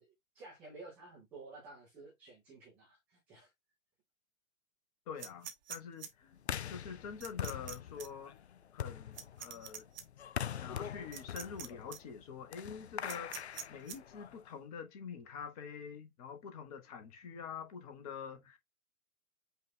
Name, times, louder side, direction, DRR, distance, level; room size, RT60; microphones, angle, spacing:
voice 1, 0.0-3.5, right 3 dB, 5° right, 0.5 m, -53 dB
voice 2, 5.1-8.4 8.7-9.9 10.5-18.6, left 6 dB, 25° left, 1.0 m, -46 dB
sound 1, 5.2-6.1 7.2-7.7 8.0-8.1 9.1-10.0 11.1-11.7 11.9-12.0 13.1-14.0, right 9 dB, 30° right, 0.8 m, -44 dB
sound 2, 6.4-14.5, left 9 dB, 50° left, 0.4 m, -43 dB
5.4 x 2.4 x 3.6 m
figure-of-eight pair, 120°, 43 cm